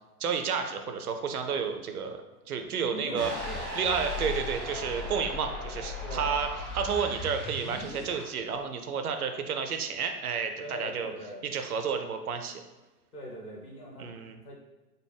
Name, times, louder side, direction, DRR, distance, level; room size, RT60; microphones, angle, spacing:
voice 1, 0.2-2.2 2.5-3.3 3.7-6.5 6.7-11.1 11.4-12.6 14.0-14.4, right 6 dB, 65° right, 6 dB, 0.6 m, -31 dB
voice 2, 2.9-3.7 4.1-4.4 6.0-6.4 10.6-11.4 13.1-14.1 14.4-14.5, equal, 65° left, -1 dB, 1.2 m, -41 dB
sound 1, 3.2-8.3, left 1 dB, ahead, 0.4 m, -37 dB
5.3 x 2.1 x 3.4 m, 1.1 s
figure-of-eight pair, 105°, 48 cm